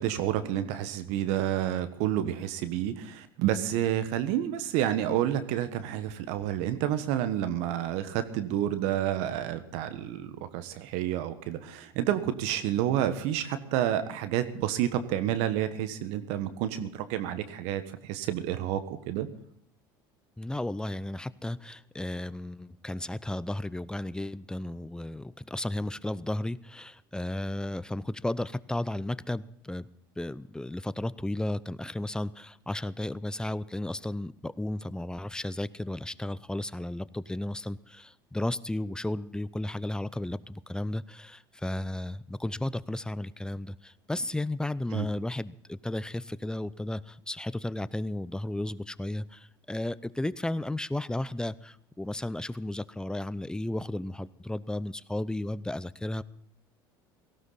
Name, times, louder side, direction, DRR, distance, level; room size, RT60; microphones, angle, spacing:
voice 1, 0.0-19.3 44.9-45.1, right 11 dB, 65° right, 11 dB, 1.3 m, -29 dB
voice 2, 20.4-29.9 30.2-56.2, left 1 dB, 5° left, 17 dB, 0.6 m, -34 dB
17.5 x 15.5 x 4.1 m, 0.69 s
hypercardioid pair, 75°, 12 cm